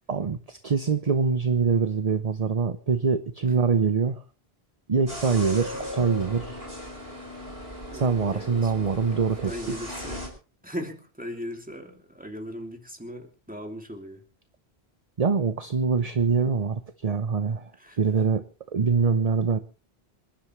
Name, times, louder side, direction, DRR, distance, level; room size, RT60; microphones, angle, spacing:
voice 1, 0.1-4.2 4.9-6.6 7.9-9.5 15.2-17.7 18.0-18.4 18.7-19.6, right 5 dB, 40° right, 11 dB, 0.8 m, -24 dB
sound 1, 5.1-10.3, equal, 65° right, 4.8 m, -37 dB
voice 2, 7.9-9.1 9.4-10.2 10.6-14.2 17.8-18.0, equal, 10° right, 3 dB, 2.7 m, -38 dB
27.0 x 11.5 x 3.1 m, 0.34 s
omnidirectional pair, 1.1 m